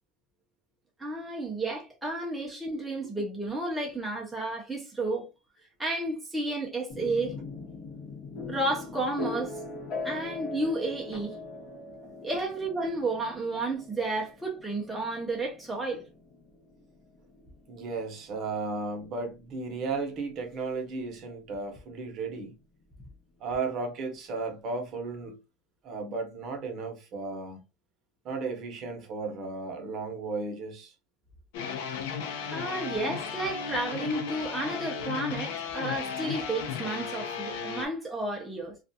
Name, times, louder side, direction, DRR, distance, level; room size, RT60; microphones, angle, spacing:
voice 1, 1.0-5.3 5.8-7.3 8.5-9.6 10.0-11.4 12.2-16.0 32.5-38.8, right 2 dB, 5° right, 0.5 m, -32 dB
sound 1, 6.9-20.7, left 3 dB, 50° left, 0.9 m, -41 dB
voice 2, 17.7-22.6 23.4-25.4 25.8-27.6 28.2-30.9, right 4 dB, 40° right, 0.8 m, -34 dB
sound 2, 31.5-37.9, left 6 dB, 80° left, 0.6 m, -35 dB
2.4 x 2.2 x 2.6 m
cardioid pair, 145°, 0 cm